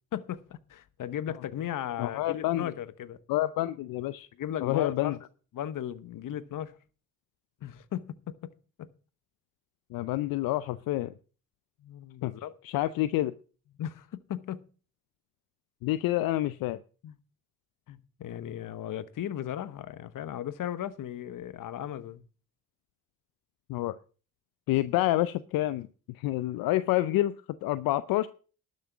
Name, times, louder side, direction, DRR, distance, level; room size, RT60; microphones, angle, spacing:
voice 1, 0.1-3.2 4.4-5.2 5.5-6.8 7.6-8.5 8.8-8.9 11.8-12.5 13.8-14.7 17.0-17.2 17.9-22.2, left 10 dB, 65° left, 1.1 m, -36 dB
voice 2, 2.0-2.7 3.3-4.3 4.6-5.1 9.9-11.1 12.2-12.3 12.6-13.3 15.8-16.8 23.7-24.0 24.7-25.9 26.1-27.4 27.6-28.3, left 15 dB, 80° left, 0.6 m, -28 dB
12.0 x 6.4 x 7.2 m
supercardioid pair, 60°, 34 cm